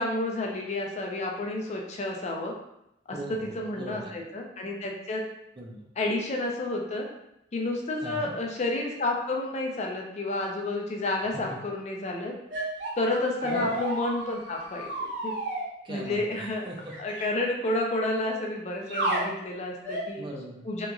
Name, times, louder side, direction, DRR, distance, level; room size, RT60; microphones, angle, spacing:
voice 1, 0.0-2.5 3.1-5.2 6.0-7.1 7.5-12.3 13.0-15.3 15.9-16.6 17.0-20.2 20.6-20.9, left 2 dB, 35° left, 0 dB, 0.4 m, -30 dB
voice 2, 3.1-4.1 5.6-5.9 8.0-8.3 11.3-11.6 13.4-13.7 15.8-16.9 20.1-20.7, right 1 dB, 25° right, -1 dB, 0.5 m, -39 dB
sound 1, 12.5-15.6 16.9-17.2 18.9-19.3 19.8-20.1, right 1 dB, 75° right, 1.0 m, -32 dB
2.9 x 2.4 x 2.3 m, 0.83 s
head